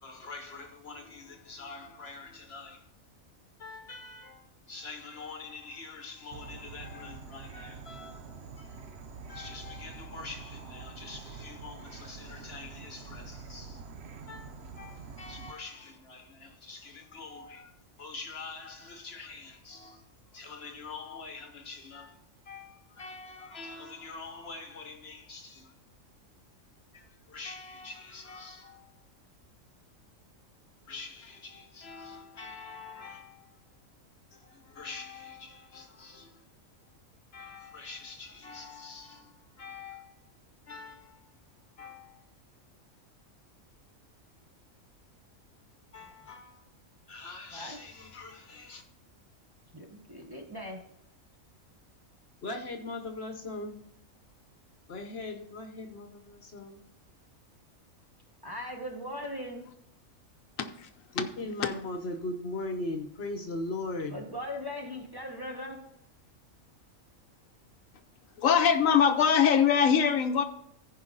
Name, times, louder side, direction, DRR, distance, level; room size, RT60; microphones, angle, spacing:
voice 1, 0.0-2.8 3.6-13.8 14.3-20.0 20.3-22.2 22.5-25.7 26.9-28.9 30.9-33.5 34.3-36.4 37.3-40.1 40.7-41.3 41.8-42.2 45.9-46.7 47.1-48.8 52.4-53.8 54.9-56.8 61.1-64.2, left 3 dB, 50° left, 1.1 m, -42 dB
Insect / Frog, 6.3-15.5, right 5 dB, 55° right, 0.9 m, -46 dB
voice 2, 49.7-50.8 58.4-59.6 64.1-65.8, left 1 dB, 15° right, 1.2 m, -39 dB
voice 3, 60.6-61.3 68.4-70.4, left 7 dB, 75° left, 1.1 m, -23 dB
15.0 x 5.1 x 3.9 m
omnidirectional pair, 1.4 m